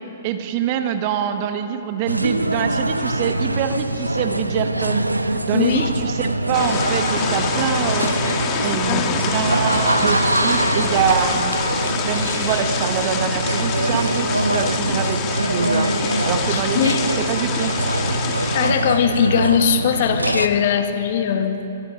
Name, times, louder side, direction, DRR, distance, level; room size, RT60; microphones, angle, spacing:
voice 1, 0.2-8.1 8.6-11.6 12.0-15.9 16.2-17.7, right 8 dB, 40° right, 8 dB, 1.4 m, -25 dB
sound 1, 2.1-20.5, right 2 dB, 85° right, 0.8 m, -23 dB
voice 2, 5.5-5.9 8.9-9.5 16.5-17.0 18.5-21.6, left 8 dB, 45° left, 7 dB, 1.7 m, -20 dB
sound 2, 6.5-18.7, left 7 dB, 30° left, 1.9 m, -27 dB
24.0 x 23.5 x 5.3 m, 2.9 s
figure-of-eight pair, 115°, 0 cm